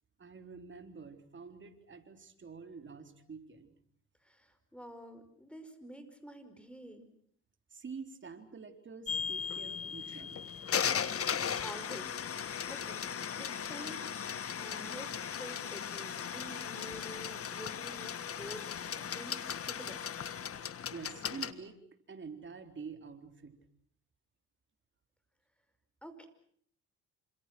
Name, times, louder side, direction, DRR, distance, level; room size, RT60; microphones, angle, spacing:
voice 1, 0.2-3.7 7.7-10.4 20.9-21.8 22.1-23.6, right 5 dB, 40° right, 7 dB, 3.8 m, -47 dB
voice 2, 4.2-7.1 11.2-14.2 14.6-20.0 26.0-26.3, equal, 5° left, 10 dB, 5.4 m, -49 dB
sound 1, 9.1-21.5, left 8 dB, 50° left, 1.6 m, -37 dB
28.5 x 27.0 x 6.2 m, 0.62 s
cardioid pair, 90°, 30 cm